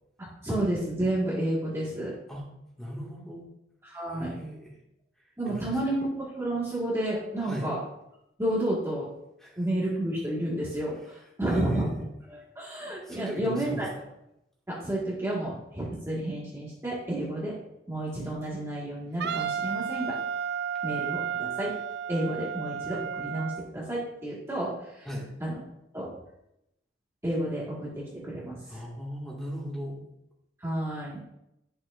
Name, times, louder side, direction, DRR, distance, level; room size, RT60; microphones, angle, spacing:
voice 1, 0.2-2.2 3.8-4.4 5.4-7.8 8.4-9.1 9.6-11.9 12.3-13.9 14.7-17.5 17.9-20.2 20.8-21.7 22.1-25.1 25.4-25.6 25.9-26.1 27.2-27.9 28.2-28.8 30.6-31.2, right 1 dB, 15° right, -6 dB, 1.8 m, -31 dB
voice 2, 2.8-3.5 4.1-4.7 5.5-5.7 7.4-7.7 9.4-9.6 11.5-12.1 13.1-13.9 25.1-25.3 28.7-30.0, equal, 5° left, -5 dB, 2.0 m, -37 dB
Wind instrument woodwind instrument, 19.2-23.7, right 8 dB, 60° right, 0.4 m, -32 dB
11.0 x 6.7 x 2.6 m, 0.82 s
head